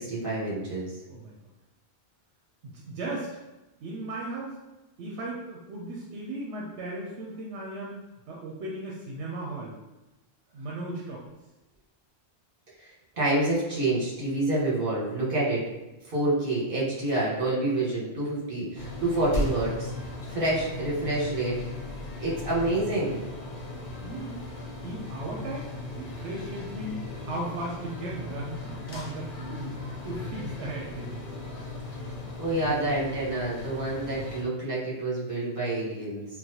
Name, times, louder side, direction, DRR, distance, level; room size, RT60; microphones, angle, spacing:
voice 1, 0.0-0.9 12.8-12.9 13.2-15.6 16.1-19.9 20.3-21.6 22.2-23.2 32.4-36.2, right 2 dB, 50° right, -6 dB, 1.3 m, -28 dB
voice 2, 1.0-1.3 2.7-3.4 3.8-4.6 5.0-9.8 10.5-11.2 24.0-24.5 24.8-31.3, right 2 dB, 80° right, -3 dB, 0.9 m, -36 dB
sound 1, 18.7-34.4, left 2 dB, 55° left, 0.8 m, -37 dB
3.9 x 2.2 x 2.8 m, 1.0 s
omnidirectional pair, 1.1 m